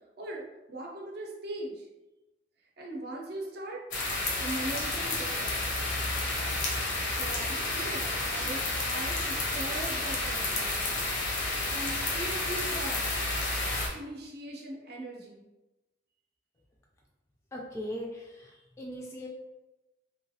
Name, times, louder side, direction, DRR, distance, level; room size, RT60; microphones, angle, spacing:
voice 1, 0.2-1.9 2.8-3.8 4.4-5.7 7.1-10.8 11.7-13.1 13.9-15.4, right 1 dB, 60° right, -1 dB, 0.6 m, -40 dB
sound 1, 3.9-13.9, left 2 dB, 80° left, 0.6 m, -31 dB
voice 2, 17.5-19.3, equal, 15° left, -2 dB, 0.3 m, -39 dB
2.8 x 2.3 x 2.7 m, 1.0 s
head